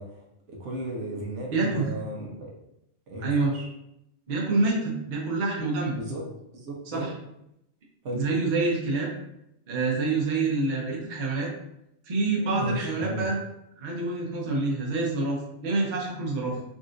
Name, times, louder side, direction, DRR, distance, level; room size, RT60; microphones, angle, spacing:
voice 1, 0.0-2.5 3.1-3.7 6.0-6.2 6.5-7.1 8.0-8.3 12.4-13.2, right 1 dB, 75° right, -1 dB, 1.1 m, -35 dB
voice 2, 1.5-1.9 3.2-3.5 4.3-6.0 6.9-7.1 8.1-9.1 9.7-11.5 12.1-13.4 13.8-16.6, right 3 dB, 45° right, -2 dB, 0.7 m, -27 dB
3.7 x 2.6 x 2.4 m, 0.82 s
omnidirectional pair, 1.2 m